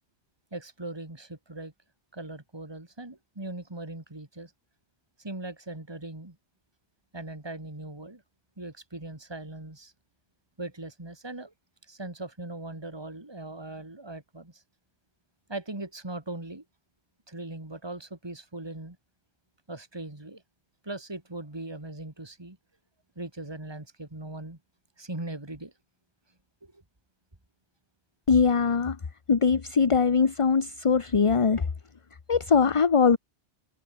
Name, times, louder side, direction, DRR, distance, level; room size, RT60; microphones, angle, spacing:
voice 1, 0.5-1.7 2.1-4.5 5.2-6.4 7.1-8.2 8.6-9.9 10.6-11.5 11.8-14.6 15.5-16.6 17.3-19.0 19.7-20.4 20.8-22.6 23.2-24.6 25.0-25.7 26.6-26.8, right 2 dB, 20° right, 2.7 m, -39 dB
voice 2, 28.3-29.0 29.3-31.7 32.3-33.2, left 5 dB, 30° left, 0.8 m, -21 dB
omnidirectional pair, 1.2 m